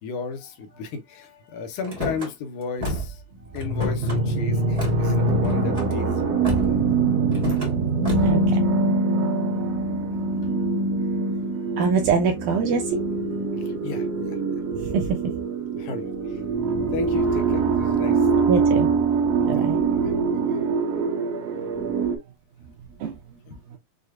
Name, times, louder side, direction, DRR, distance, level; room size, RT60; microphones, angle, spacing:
voice 1, 0.0-6.4 8.8-8.9 9.6-9.8 10.3-10.6 13.6-14.4 15.7-16.4 16.9-18.3 19.3-19.6 19.9-20.6 23.5-23.6, left 5 dB, 75° left, 2.2 m, -35 dB
Car / Slam, 1.8-2.3 2.8-3.2 3.5-4.2 4.8-5.0 5.4-5.9 6.4-6.9 7.3-7.7 8.0-8.4, left 2 dB, 40° right, 0.5 m, -30 dB
sound 1, 3.5-22.2, right 3 dB, 65° right, 1.9 m, -23 dB
voice 2, 8.2-8.6 11.8-13.0 14.8-15.1 18.5-18.9 19.5-19.8 23.0-23.1, right 6 dB, 80° right, 2.0 m, -23 dB
6.4 x 2.4 x 2.4 m
omnidirectional pair, 3.7 m